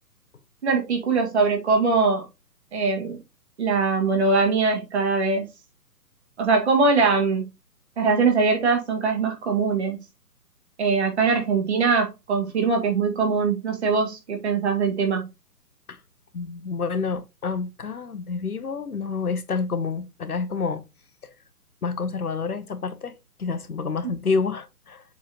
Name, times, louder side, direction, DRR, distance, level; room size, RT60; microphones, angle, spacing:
voice 1, 0.6-2.2 2.7-3.2 3.6-5.5 6.4-7.5 8.0-10.0 10.8-15.3 24.0-24.1, right 4 dB, 45° right, 2.1 m, -22 dB
voice 2, 16.3-20.8 21.2-21.3 21.8-25.0, left 5 dB, 65° left, 1.1 m, -28 dB
7.3 x 4.5 x 2.9 m
figure-of-eight pair, 135°, 48 cm